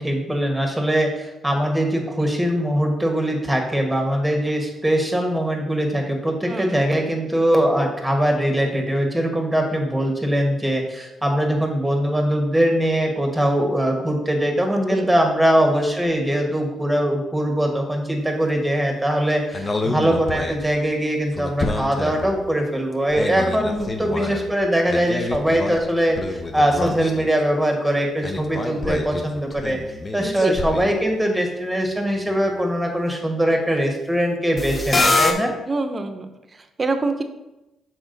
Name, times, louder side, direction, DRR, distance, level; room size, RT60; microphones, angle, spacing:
voice 1, 0.0-35.5, equal, 5° right, 2 dB, 1.6 m, -22 dB
voice 2, 6.5-6.8 14.7-15.2 23.4-24.0 30.2-30.5 35.7-37.2, right 3 dB, 35° right, 8 dB, 0.8 m, -27 dB
sound 1, 19.5-20.7 21.3-22.4 22.9-24.6 24.9-27.4 27.7-27.8 28.2-31.1 34.6-35.3, left 2 dB, 35° left, 0.8 m, -26 dB
6.1 x 4.5 x 4.0 m, 0.96 s
supercardioid pair, 65°, 0 cm